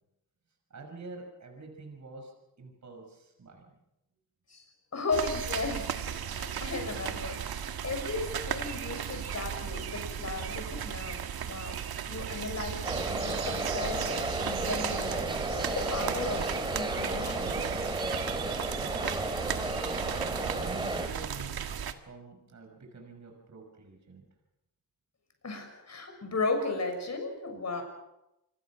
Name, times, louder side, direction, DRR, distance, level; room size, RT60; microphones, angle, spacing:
voice 1, 0.7-3.7 18.8-19.9 20.3-21.7 22.1-24.2, right 3 dB, 50° right, 2 dB, 6.1 m, -47 dB
voice 2, 4.9-16.4 16.7-17.8 25.4-27.8, left 3 dB, 45° left, 5 dB, 6.8 m, -36 dB
sound 1, 5.1-21.9, right 8 dB, 85° right, 1.7 m, -35 dB
sound 2, 12.8-21.1, right 1 dB, 15° right, 2.8 m, -33 dB
27.5 x 21.5 x 6.2 m, 0.90 s
cardioid pair, 105°, 36 cm